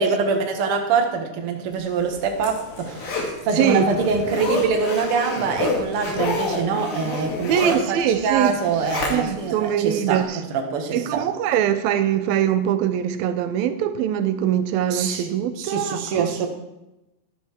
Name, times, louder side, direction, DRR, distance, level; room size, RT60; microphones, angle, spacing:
voice 1, 0.0-11.3 14.9-15.3 15.6-16.5, right 5 dB, 50° right, 2.0 m, -24 dB
Zipper (clothing), 1.9-9.5 10.0-10.1, left 3 dB, 85° left, 4.2 m, -29 dB
voice 2, 7.5-8.5 9.1-10.4 10.9-16.3, right 10 dB, 85° right, 2.5 m, -22 dB
12.5 x 12.0 x 4.6 m
omnidirectional pair, 4.1 m